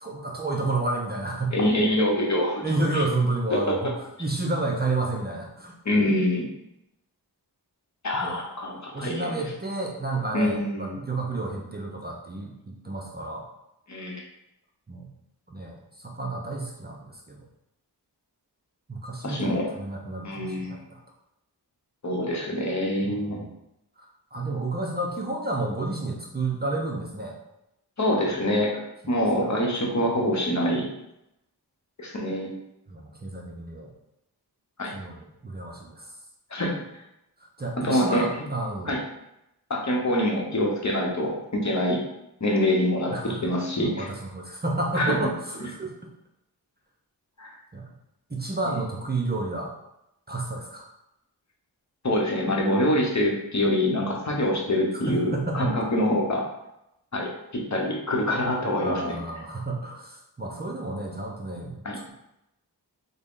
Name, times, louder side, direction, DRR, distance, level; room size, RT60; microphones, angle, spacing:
voice 1, 0.0-1.6 2.6-3.9 4.2-5.7 8.2-8.4 8.9-12.5 12.8-13.5 14.9-15.1 15.5-17.4 18.9-21.0 23.0-23.5 24.3-27.4 29.0-29.1 29.4-29.7 32.9-33.9 34.9-36.1 37.6-38.9 43.1-43.4 43.8-45.9 47.7-47.9 48.3-49.7 50.3-50.9 55.1-55.8 58.8-61.7, right 2 dB, 25° right, -1 dB, 0.5 m, -30 dB
voice 2, 1.5-2.6 2.9-3.0 3.5-3.8 5.8-6.4 8.0-9.4 10.3-11.0 13.9-14.2 19.2-19.7 20.2-20.8 22.0-23.4 28.0-28.7 29.1-30.9 32.0-32.5 34.8-34.9 36.5-36.7 37.8-38.2 38.9-39.0 39.7-42.0 42.4-43.1 43.4-44.1 44.9-45.2 47.4-47.6 48.7-48.8 52.0-56.4 57.1-59.2 61.8-62.0, left 1 dB, 45° left, -1 dB, 0.9 m, -25 dB
3.6 x 2.1 x 3.6 m, 0.86 s
cardioid pair, 50°, 41 cm